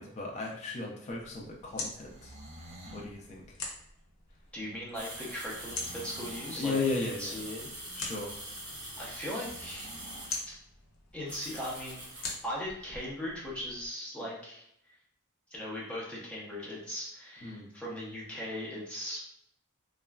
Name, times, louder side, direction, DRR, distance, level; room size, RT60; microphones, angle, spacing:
voice 1, 0.0-2.3 2.9-3.6 6.5-7.3 8.0-8.4 17.4-17.7, left 3 dB, 35° left, -2 dB, 0.4 m, -35 dB
sound 1, 1.1-13.9, left 3 dB, 70° left, 0.7 m, -45 dB
sound 2, 1.9-3.1 5.5-6.8 9.3-10.4, right 1 dB, 30° right, 0.5 m, -49 dB
voice 2, 4.5-7.7 9.0-9.9 10.5-10.6 11.1-14.6 15.5-19.2, equal, 5° left, -6 dB, 0.8 m, -39 dB
sound 3, 4.9-10.4 11.3-12.4, right 1 dB, 60° right, 1.2 m, -44 dB
2.9 x 2.2 x 2.3 m, 0.73 s
head